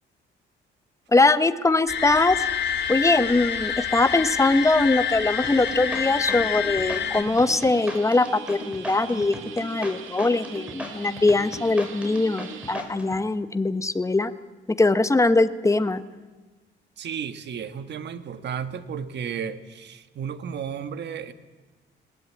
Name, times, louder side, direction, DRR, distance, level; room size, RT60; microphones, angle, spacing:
voice 1, 1.1-2.4 2.9-14.3 14.7-16.0, left 2 dB, 15° left, 12 dB, 1.2 m, -22 dB
sound 1, 1.9-7.2, left 9 dB, 65° left, 2.2 m, -28 dB
sound 2, 2.4-12.8, right 9 dB, 85° right, 1.9 m, -44 dB
sound 3, 5.4-13.2, equal, 5° right, 5.2 m, -37 dB
voice 2, 17.0-21.3, right 7 dB, 60° right, 11 dB, 1.5 m, -33 dB
21.0 x 18.0 x 8.8 m, 1.3 s
cardioid pair, 90°, 20 cm